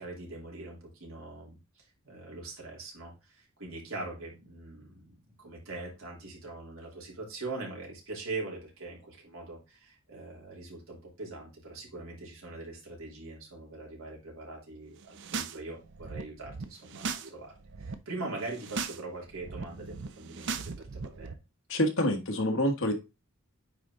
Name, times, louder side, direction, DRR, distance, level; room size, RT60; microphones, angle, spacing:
voice 1, 0.0-21.4, right 2 dB, 80° right, -2 dB, 3.1 m, -42 dB
sound 1, 15.0-15.6 15.8-17.3 17.6-17.9 18.4-19.0 19.3-21.3, right 5 dB, 55° right, 0.6 m, -38 dB
voice 2, 21.7-22.9, left 1 dB, 65° left, 4 dB, 1.5 m, -27 dB
9.3 x 3.9 x 3.7 m, 0.27 s
head